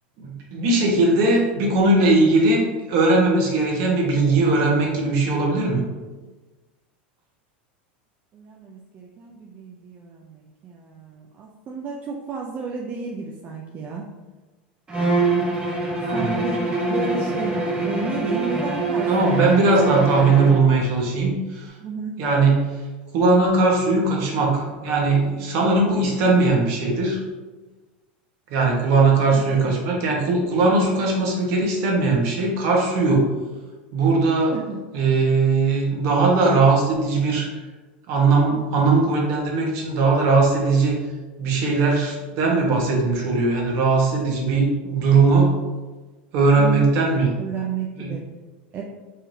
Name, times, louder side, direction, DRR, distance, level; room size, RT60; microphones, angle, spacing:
voice 1, 0.2-5.8 16.0-16.4 19.1-21.7 22.2-22.6 23.1-27.2 28.5-33.3 33.9-34.5 34.9-37.5 38.1-41.0 41.4-45.5 46.3-47.3 48.0-48.1, right 3 dB, 55° right, -1 dB, 1.3 m, -19 dB
voice 2, 8.3-14.1 16.1-17.5 17.8-20.1 21.8-22.1 29.2-29.8 34.5-34.8 46.5-46.9 47.4-48.2 48.7-48.8, right 4 dB, 35° right, -1 dB, 0.5 m, -32 dB
Bowed string instrument, 14.9-20.7, right 2 dB, 20° right, 1.0 m, -24 dB
4.6 x 3.3 x 2.7 m, 1.2 s
hypercardioid pair, 105°, 5 cm